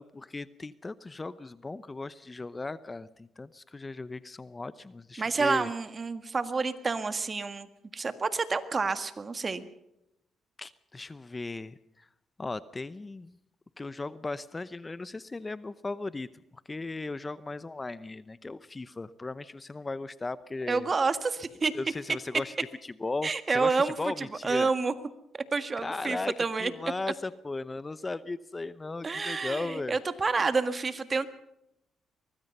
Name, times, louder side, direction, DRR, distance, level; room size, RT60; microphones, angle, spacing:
voice 1, 0.0-5.7 10.6-12.1 12.4-13.4 13.8-16.3 16.7-20.9 21.7-22.5 23.0-24.7 25.8-26.3 26.6-30.0, left 3 dB, 20° left, 16 dB, 0.7 m, -37 dB
voice 2, 5.2-9.7 20.7-21.7 23.2-24.9 25.3-26.7 29.0-31.4, right 4 dB, 35° right, 11 dB, 1.7 m, -29 dB
24.0 x 20.0 x 5.5 m, 0.84 s
cardioid pair, 90°, 0 cm